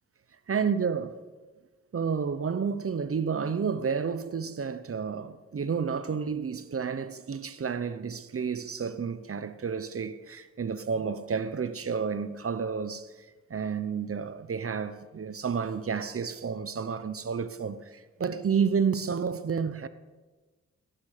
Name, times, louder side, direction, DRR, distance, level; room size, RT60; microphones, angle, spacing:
voice 1, 0.5-1.2 1.9-13.1 13.5-19.9, right 6 dB, 45° right, 0.9 m, -30 dB
17.5 x 10.0 x 6.7 m
cardioid pair, 75°, 30 cm